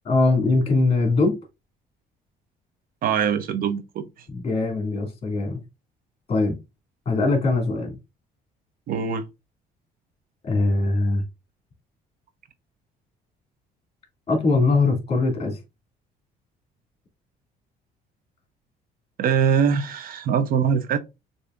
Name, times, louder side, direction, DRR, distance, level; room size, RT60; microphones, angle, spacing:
voice 1, 0.1-1.4 4.3-5.6 6.3-6.6 7.1-8.0 10.4-11.2 14.3-15.6, left 3 dB, 35° left, 2.1 m, -21 dB
voice 2, 3.0-4.0 8.9-9.2 19.2-21.0, right 7 dB, 60° right, 0.6 m, -22 dB
6.5 x 2.7 x 2.4 m
cardioid pair, 110°, 17 cm